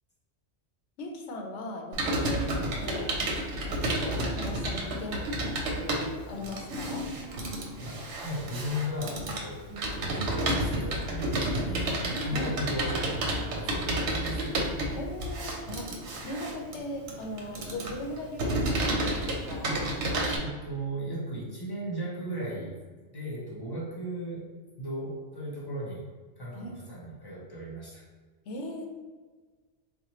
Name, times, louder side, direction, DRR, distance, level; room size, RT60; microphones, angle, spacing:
voice 1, 1.0-3.1 3.6-7.1 12.3-12.6 15.0-19.8 26.5-26.8 28.4-28.9, left 1 dB, 90° left, 1 dB, 1.0 m, -39 dB
Computer keyboard, 1.9-20.4, right 1 dB, 90° right, 1.0 m, -31 dB
voice 2, 7.8-14.6 20.4-22.8 23.1-24.5 24.8-26.0 26.4-28.1, equal, 25° left, -4 dB, 0.7 m, -36 dB
4.2 x 2.2 x 3.0 m, 1.4 s
omnidirectional pair, 1.2 m